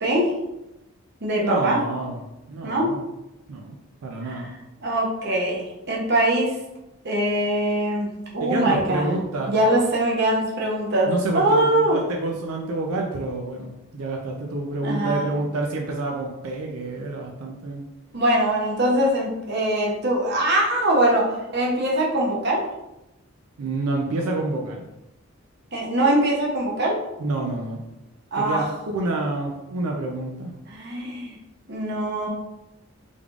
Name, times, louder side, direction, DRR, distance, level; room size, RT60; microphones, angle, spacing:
voice 1, 0.0-0.3 1.2-1.8 2.6-2.9 4.3-4.4 4.8-6.5 7.0-9.1 9.5-12.0 14.8-15.3 18.1-22.6 25.7-27.0 28.3-28.6 30.7-31.4 31.7-32.3, right 1 dB, 50° right, -2 dB, 0.7 m, -22 dB
voice 2, 1.4-2.2 2.5-3.0 3.5-3.8 4.0-4.5 8.4-9.5 11.1-17.9 23.6-24.9 27.2-27.8 28.4-30.6, right 2 dB, 80° right, 1 dB, 0.4 m, -28 dB
3.5 x 3.5 x 2.4 m, 0.94 s
head